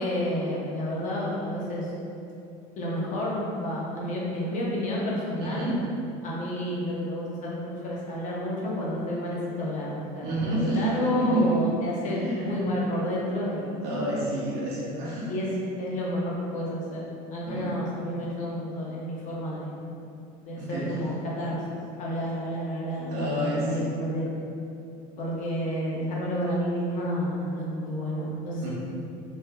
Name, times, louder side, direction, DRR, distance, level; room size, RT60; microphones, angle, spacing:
voice 1, 0.0-1.9 2.8-5.7 6.2-13.9 15.2-15.5 15.8-17.0 17.3-19.8 20.4-24.3 25.2-28.7, equal, 45° left, -4 dB, 0.8 m, -30 dB
voice 2, 5.4-5.7 10.2-11.6 12.2-12.5 13.8-15.3 17.5-17.7 20.6-20.8 23.1-23.9 28.6-28.7, right 1 dB, 65° right, -6 dB, 1.0 m, -29 dB
3.1 x 2.1 x 3.6 m, 2.7 s
supercardioid pair, 115°, 18 cm